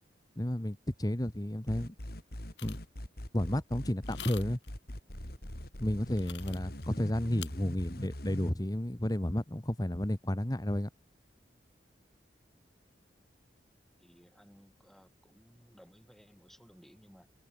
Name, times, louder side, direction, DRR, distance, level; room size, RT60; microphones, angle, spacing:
voice 1, 0.4-1.9 2.6-2.8 3.3-4.6 5.8-10.9, left 1 dB, 20° left, 1.5 m, -32 dB
sound 1, 1.7-8.5, equal, 60° left, 4.5 m, -42 dB
sound 2, 2.6-2.9 4.0-4.7 6.1-6.8 7.4-7.5, left 10 dB, 80° left, 5.5 m, -45 dB
voice 2, 14.0-17.3, equal, ahead, 6.2 m, -59 dB
head